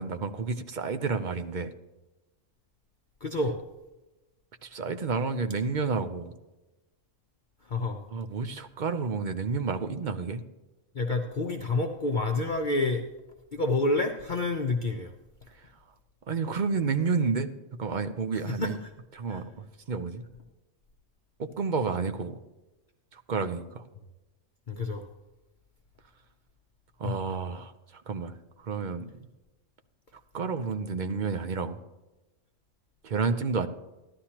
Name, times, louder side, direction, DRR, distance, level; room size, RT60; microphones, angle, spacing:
voice 1, 0.0-1.7 4.6-6.3 8.1-10.4 16.3-17.5 17.8-18.8 19.2-19.4 19.9-20.2 21.4-22.3 23.3-23.7 27.0-27.7 28.1-28.3 28.7-29.1 30.3-31.8 33.0-33.7, right 4 dB, 45° right, 9 dB, 0.6 m, -30 dB
voice 2, 3.2-3.6 7.7-8.0 10.9-13.0 13.5-15.1 18.3-18.9 19.3-19.4 24.7-25.0 27.0-27.1, left 2 dB, 45° left, 3 dB, 0.8 m, -28 dB
14.5 x 11.5 x 2.9 m, 1.0 s
omnidirectional pair, 1.3 m